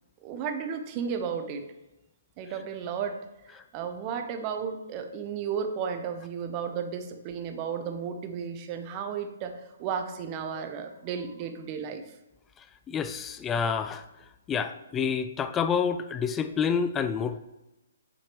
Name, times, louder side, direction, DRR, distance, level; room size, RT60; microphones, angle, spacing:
voice 1, 0.2-1.7 2.4-9.5 9.8-12.0, right 7 dB, 25° right, 6 dB, 0.7 m, -33 dB
voice 2, 12.9-14.0 14.5-17.4, left 6 dB, 15° left, 10 dB, 0.3 m, -28 dB
8.6 x 5.1 x 3.0 m, 0.98 s
hypercardioid pair, 160°, 0 cm